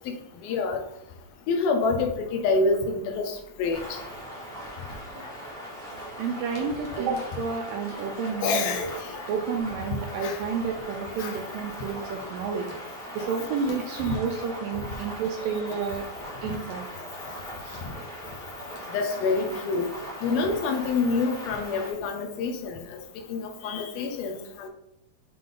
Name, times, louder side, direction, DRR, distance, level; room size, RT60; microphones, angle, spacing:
voice 1, 0.4-0.8 1.5-4.0 8.4-9.2 10.2-10.4 11.2-11.4 14.0-14.1 17.8-17.9 18.9-19.9 20.2-23.0 23.3-24.7, left 4 dB, 80° left, 4 dB, 2.3 m, -27 dB
sound 1, 3.7-21.9, equal, 5° left, 0.5 m, -40 dB
sound 2, 4.6-12.9 13.2-13.3 13.6-13.9 14.2-14.3 14.7-14.9 15.2-15.4 15.7-15.9 16.2-16.4 16.7-16.9 17.3-17.4 17.7-17.9 18.3-18.4 18.7-18.9 19.2-19.4 19.7-19.9 20.3-20.5, left 1 dB, 65° left, 2.5 m, -47 dB
voice 2, 6.2-8.8 9.3-12.7 13.2-16.1 16.4-16.9 17.6-17.9, right 5 dB, 80° right, 3 dB, 2.1 m, -30 dB
7.6 x 3.4 x 3.7 m, 0.80 s
omnidirectional pair, 4.5 m